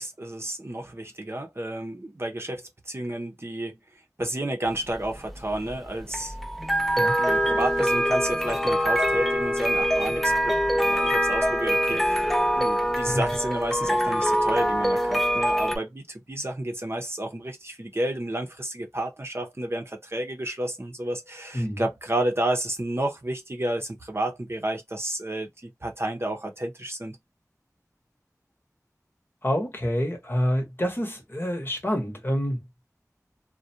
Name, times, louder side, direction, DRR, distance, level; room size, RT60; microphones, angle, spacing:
voice 1, 0.0-3.8 4.2-6.4 7.2-12.3 12.6-27.2, right 1 dB, 40° right, 0.7 m, -31 dB
sound 1, 4.7-15.8, equal, ahead, 0.5 m, -24 dB
voice 2, 29.4-32.6, equal, 35° left, 1.0 m, -27 dB
2.4 x 2.2 x 2.7 m
wide cardioid pair, 40°, 6 cm